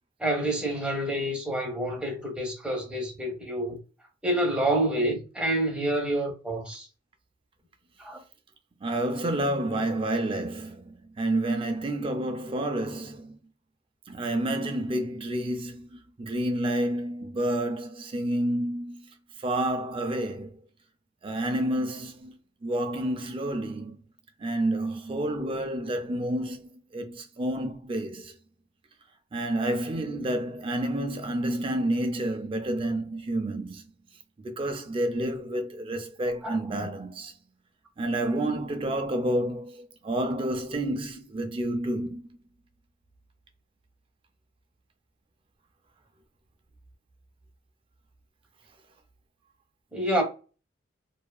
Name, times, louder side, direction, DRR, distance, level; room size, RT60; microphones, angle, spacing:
voice 1, 0.2-3.8 4.2-6.9 8.0-8.2 36.4-36.6 38.2-38.3 49.9-50.2, right 1 dB, 5° right, 0.7 m, -28 dB
voice 2, 8.8-13.4 14.1-19.0 19.4-20.5 21.2-22.4 22.6-24.0 24.4-28.3 29.3-33.8 34.4-37.3 38.0-42.2, right 1 dB, 25° right, 0.3 m, -29 dB
2.7 x 2.3 x 2.2 m
head